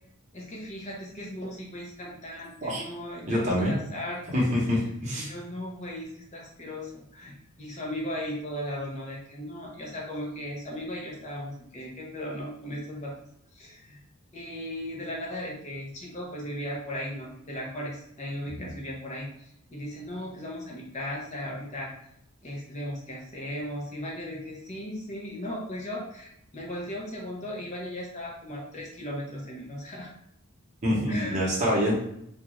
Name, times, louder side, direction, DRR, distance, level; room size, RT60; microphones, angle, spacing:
voice 1, 0.3-4.5 5.1-13.1 13.5-14.0 14.3-21.9 22.4-30.1 31.1-31.4, left 1 dB, 30° left, -2 dB, 0.6 m, -37 dB
voice 2, 3.3-3.7 4.3-5.3 30.8-31.9, equal, 30° right, -4 dB, 0.9 m, -25 dB
2.4 x 2.4 x 3.0 m, 0.73 s
head